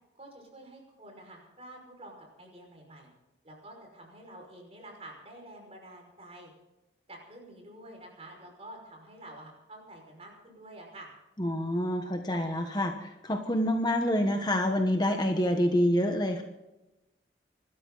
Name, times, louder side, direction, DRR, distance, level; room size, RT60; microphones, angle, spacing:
voice 1, 0.2-3.1 3.4-6.5 7.1-11.1, right 1 dB, 30° right, 1 dB, 5.5 m, -49 dB
voice 2, 11.4-16.4, equal, 20° left, 4 dB, 1.2 m, -27 dB
26.0 x 13.0 x 4.0 m, 0.99 s
head